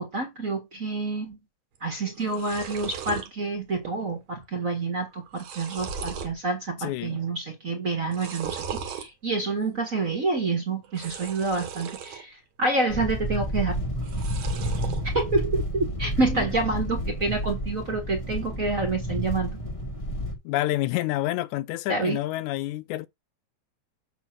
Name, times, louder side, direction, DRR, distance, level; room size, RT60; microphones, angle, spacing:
voice 1, 0.0-1.4 1.8-13.7 15.1-19.6 21.9-22.2, right 3 dB, 35° right, 1.5 m, -28 dB
sound 1, 1.8-1.9 2.1-3.3 3.7-4.2 4.4-4.5 5.1-6.4 6.8-7.3 8.0-9.1 10.8-12.2 12.6-13.2 14.0-15.0, right 7 dB, 70° right, 2.5 m, -37 dB
voice 2, 6.8-7.2 20.5-23.1, left 16 dB, 85° left, 2.0 m, -28 dB
sound 2, 12.9-20.3, equal, 20° left, 0.9 m, -30 dB
8.2 x 3.0 x 6.0 m
omnidirectional pair, 3.4 m